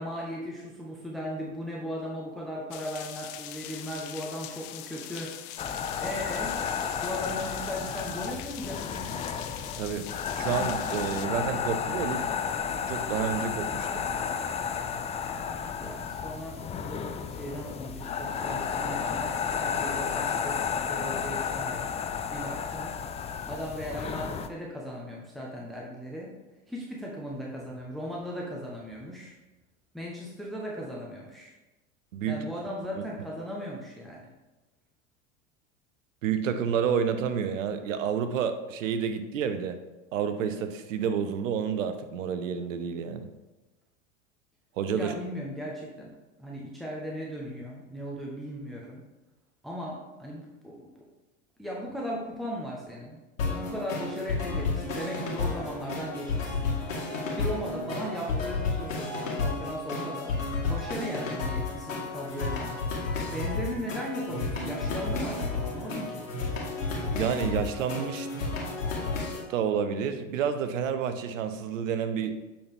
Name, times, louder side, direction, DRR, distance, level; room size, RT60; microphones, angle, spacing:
voice 1, 0.0-5.5 6.0-6.6 7.0-9.2 15.7-21.9 22.3-22.9 23.4-26.4 26.7-29.4 29.9-31.5 32.3-34.3 44.9-46.1 46.4-49.0 49.6-50.9 51.6-53.2 53.5-56.7 57.3-60.4 60.7-62.8 63.1-66.2, equal, ahead, -3 dB, 1.2 m, -37 dB
sound 1, 2.7-11.3, left 12 dB, 50° left, 0.7 m, -42 dB
sound 2, 5.6-24.5, left 7 dB, 20° left, 0.3 m, -32 dB
voice 2, 9.8-10.1 10.4-12.3 12.9-14.0 32.1-32.4 33.0-33.1 36.2-39.8 40.1-43.3 44.8-45.1 67.1-68.3 69.5-72.3, right 7 dB, 75° right, 9 dB, 0.9 m, -29 dB
sound 3, 53.4-69.4, left 3 dB, 85° left, 2.1 m, -32 dB
8.5 x 4.3 x 3.6 m, 1.1 s
hypercardioid pair, 90°, 39 cm